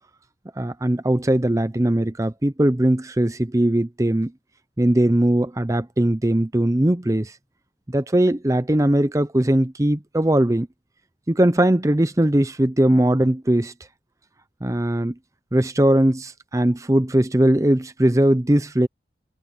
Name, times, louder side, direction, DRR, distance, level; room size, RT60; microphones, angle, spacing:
voice 1, 0.6-4.3 4.8-7.3 7.9-10.7 11.3-13.7 14.6-15.1 15.5-18.9, right 1 dB, 20° right, 0.6 m, -20 dB
head